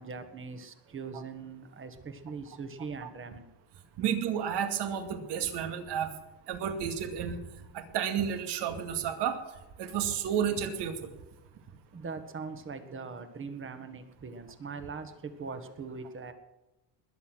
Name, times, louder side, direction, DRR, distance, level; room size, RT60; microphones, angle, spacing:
voice 1, 0.0-3.5 11.9-16.3, right 4 dB, 25° right, 8 dB, 1.7 m, -41 dB
voice 2, 4.0-6.1 6.5-7.4 7.7-9.4 9.8-11.1, right 8 dB, 60° right, 6 dB, 2.3 m, -31 dB
20.5 x 8.4 x 6.3 m, 1.0 s
cardioid pair, 140°, 45 cm